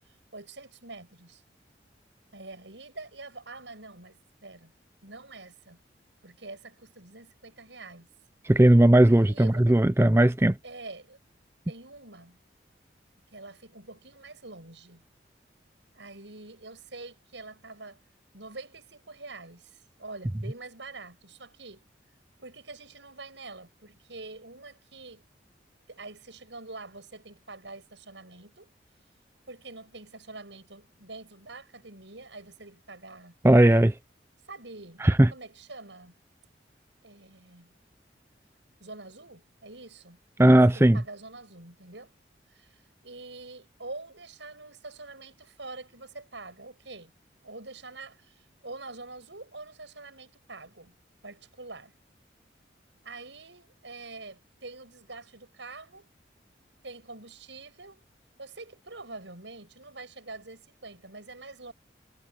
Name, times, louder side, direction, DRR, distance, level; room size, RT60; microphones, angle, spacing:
voice 1, 0.3-1.4 2.3-4.7 5.0-5.8 6.2-8.1 9.1-9.8 10.6-11.2 11.7-12.4 13.3-15.0 15.9-18.0 18.3-21.8 22.4-25.2 25.9-28.7 29.5-33.3 34.5-36.1 37.0-37.7 38.8-42.1 42.5-42.7 43.0-47.1 47.4-50.9 51.2-51.9 53.0-56.1 56.8-58.0 58.4-61.7, right 3 dB, 80° right, 6.7 m, -45 dB
voice 2, 8.5-10.5 33.4-33.9 35.0-35.3 40.4-41.0, right 1 dB, 15° right, 0.5 m, -18 dB
head